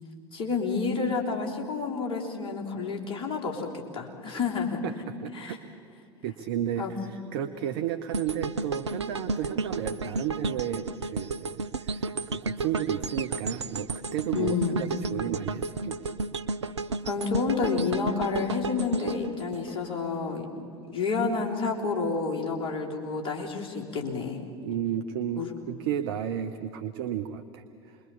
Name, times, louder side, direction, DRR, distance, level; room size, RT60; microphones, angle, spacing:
voice 1, 0.3-3.7 3.9-4.8 5.3-5.6 6.8-6.9 14.3-14.8 17.0-20.5 20.9-24.4 25.4-25.5, left 4 dB, 40° left, 0 dB, 3.6 m, -29 dB
voice 2, 5.2-5.6 6.2-16.0 24.6-28.0, right 10 dB, 60° right, 8 dB, 0.9 m, -33 dB
sound 1, 8.1-20.3 20.7-20.9, right 3 dB, 80° right, 0.6 m, -33 dB
28.0 x 22.0 x 7.1 m, 2.5 s
figure-of-eight pair, 75°, 14 cm